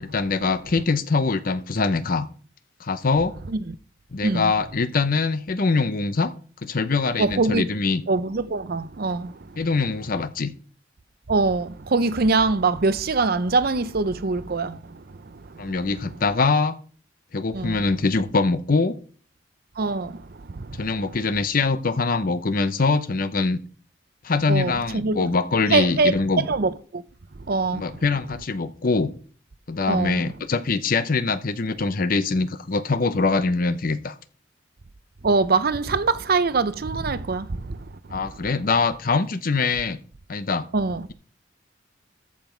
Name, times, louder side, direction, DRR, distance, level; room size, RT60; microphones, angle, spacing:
voice 1, 0.0-2.3 2.8-3.3 4.1-6.3 6.6-8.0 9.6-10.5 15.6-16.8 17.3-19.0 20.8-23.6 24.2-26.5 27.7-29.1 29.7-34.1 38.1-40.0 40.3-40.7, left 4 dB, 45° left, 0.7 m, -23 dB
voice 2, 7.2-7.6 8.1-9.2 11.3-11.7 11.9-14.7 17.6-17.7 19.8-20.1 24.5-24.7 25.0-25.2 25.7-26.1 26.5-26.7 27.5-27.8 29.9-30.1 35.2-37.4 40.7-41.0, right 3 dB, 50° right, 0.6 m, -22 dB
14.0 x 5.8 x 4.5 m
head